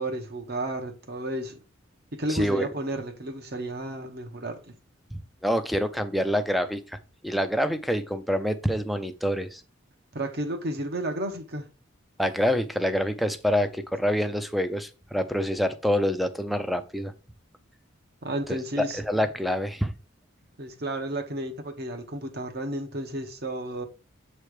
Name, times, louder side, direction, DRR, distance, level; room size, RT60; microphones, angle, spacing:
voice 1, 0.0-1.6 2.1-4.7 10.1-11.7 18.2-19.0 20.6-23.8, right 1 dB, 55° right, 1.1 m, -32 dB
voice 2, 2.3-2.7 5.1-7.0 7.2-9.6 12.2-17.1 18.5-18.6 19.0-19.9, equal, ahead, 0.5 m, -26 dB
7.5 x 3.3 x 4.8 m
head